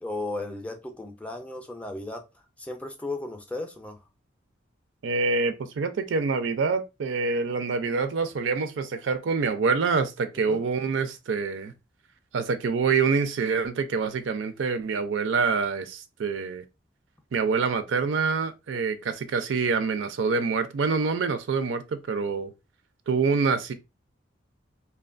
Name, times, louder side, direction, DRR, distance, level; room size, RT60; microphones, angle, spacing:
voice 1, 0.0-2.2 2.6-4.0 10.5-10.6 18.7-18.8, left 2 dB, 5° left, 0.4 m, -35 dB
voice 2, 5.0-11.7 12.3-16.6 17.3-22.5 23.1-23.7, right 4 dB, 80° right, 0.4 m, -26 dB
2.8 x 2.2 x 2.4 m
head